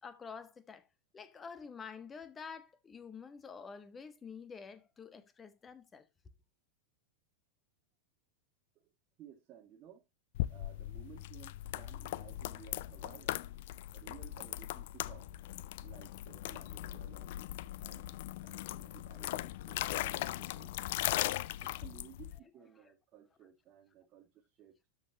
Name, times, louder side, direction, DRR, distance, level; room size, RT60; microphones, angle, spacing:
voice 1, 0.0-0.8 1.1-6.1, left 6 dB, 20° left, 1.3 m, -48 dB
voice 2, 9.2-10.0 10.5-13.5 13.9-15.3 15.8-17.3 17.8-21.2 21.6-24.9, right 10 dB, 35° right, 1.2 m, -57 dB
sound 1, 10.3-22.4, left 15 dB, 50° left, 0.4 m, -39 dB
12.5 x 6.6 x 2.8 m
figure-of-eight pair, 90°, 0 cm